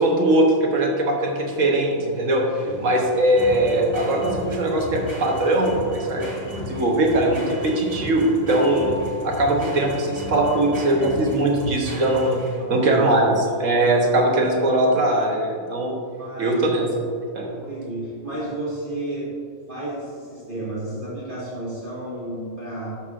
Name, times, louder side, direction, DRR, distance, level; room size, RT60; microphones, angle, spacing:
voice 1, 0.0-8.9 9.2-12.4 12.7-15.9 16.4-16.9 17.3-17.5, right 1 dB, 65° right, 0 dB, 1.4 m, -21 dB
sound 1, 1.1-12.8, left 1 dB, 20° right, 1.4 m, -34 dB
voice 2, 2.6-3.0 12.6-13.3 16.2-16.9 17.5-19.3 19.7-22.9, right 1 dB, 35° right, -9 dB, 2.0 m, -32 dB
Mallet percussion, 8.5-11.1, left 4 dB, 60° left, 0.9 m, -40 dB
12.5 x 5.9 x 2.5 m, 2.2 s
omnidirectional pair, 1.4 m